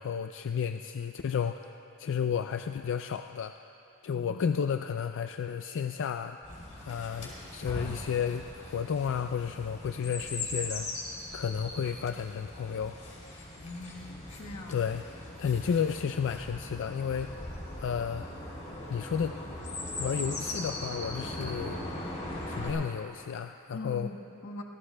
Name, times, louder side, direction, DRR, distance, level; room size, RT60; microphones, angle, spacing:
voice 1, 0.0-1.7 2.0-3.6 4.0-6.4 6.8-10.9 11.3-13.0 14.7-15.1 15.4-17.3 17.8-18.3 18.9-19.4 20.0-21.8 22.5-24.1, left 7 dB, 60° left, 7 dB, 0.4 m, -32 dB
voice 2, 4.1-4.6 13.6-14.8 23.7-24.6, left 2 dB, 85° left, 0 dB, 1.3 m, -42 dB
Chirp tweet, 6.4-22.7, left 1 dB, 35° left, 3.0 m, -40 dB
26.0 x 17.5 x 2.2 m, 2.9 s
head